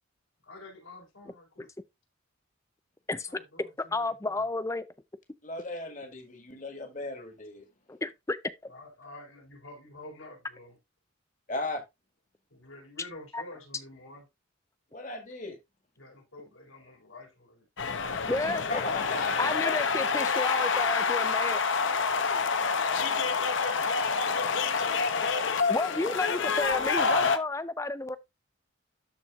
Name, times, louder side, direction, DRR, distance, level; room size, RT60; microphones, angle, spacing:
voice 1, 0.4-1.7 3.3-4.4 8.7-10.8 12.5-14.2 16.0-17.7 22.8-26.3, left 2 dB, 85° left, 4.2 m, -49 dB
voice 2, 3.1-3.4 3.9-4.9 7.9-8.4 8.6-8.7 13.3-13.4 18.3-18.8 19.4-21.6 25.7-28.2, left 2 dB, 15° left, 0.4 m, -31 dB
voice 3, 5.4-7.7 11.5-11.8 14.9-15.6 18.5-20.2, left 2 dB, 40° left, 1.8 m, -37 dB
sound 1, 17.8-27.4, left 5 dB, 65° left, 0.8 m, -27 dB
13.0 x 4.4 x 2.4 m
head